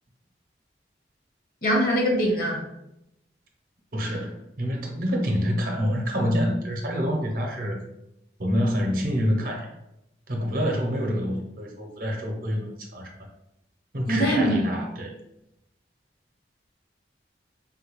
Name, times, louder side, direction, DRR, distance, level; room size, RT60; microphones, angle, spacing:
voice 1, 1.6-2.6 14.1-14.6, equal, 55° left, -1 dB, 0.9 m, -22 dB
voice 2, 3.9-7.8 8.4-9.7 10.3-13.1 13.9-15.2, equal, 50° right, 1 dB, 0.6 m, -27 dB
3.6 x 2.2 x 3.0 m, 0.85 s
head